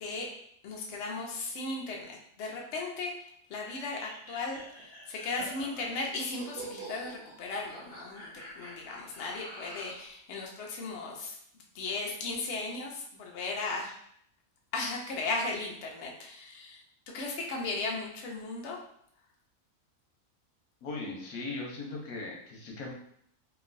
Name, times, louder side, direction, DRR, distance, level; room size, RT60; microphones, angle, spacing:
voice 1, 0.6-11.4 11.7-14.0 14.7-16.8 17.1-18.8, left 3 dB, 60° left, -1 dB, 0.8 m, -36 dB
sound 1, 3.5-10.1, right 2 dB, 35° right, 1.2 m, -47 dB
voice 2, 20.8-22.9, left 3 dB, 85° left, -1 dB, 1.2 m, -38 dB
2.9 x 2.5 x 2.5 m, 0.68 s
omnidirectional pair, 1.5 m